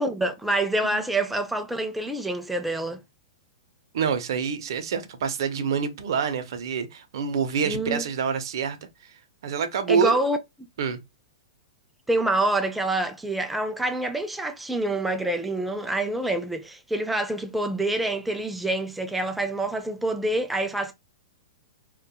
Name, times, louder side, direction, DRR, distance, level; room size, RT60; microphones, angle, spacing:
voice 1, 0.0-3.0 7.6-8.0 9.9-10.4 12.1-20.9, right 1 dB, 5° right, 0.4 m, -26 dB
voice 2, 3.9-8.8 9.0-9.1 9.4-10.2 10.8-11.0, right 6 dB, 60° right, 0.6 m, -26 dB
2.5 x 2.3 x 2.3 m
figure-of-eight pair, 105°, 3 cm